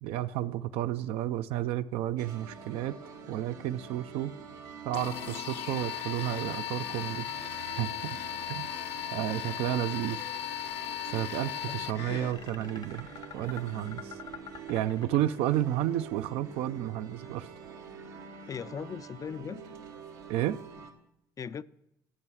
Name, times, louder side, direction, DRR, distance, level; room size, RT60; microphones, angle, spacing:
voice 1, 0.0-3.0 3.3-4.3 4.8-7.3 7.8-8.2 8.5-8.7 9.1-10.2 11.1-13.1 13.3-14.1 14.7-17.5 20.3-20.6, right 13 dB, 70° right, 0.4 m, -31 dB
symphony tune up, 2.2-20.9, right 6 dB, 90° right, 1.1 m, -47 dB
sound 1, 4.9-12.3, left 11 dB, 70° left, 0.7 m, -37 dB
sound 2, 10.8-15.8, left 7 dB, 50° left, 1.1 m, -47 dB
voice 2, 11.7-12.3 18.5-19.6 21.4-21.6, left 7 dB, 35° left, 0.4 m, -39 dB
11.5 x 6.8 x 6.2 m
hypercardioid pair, 65°, 10 cm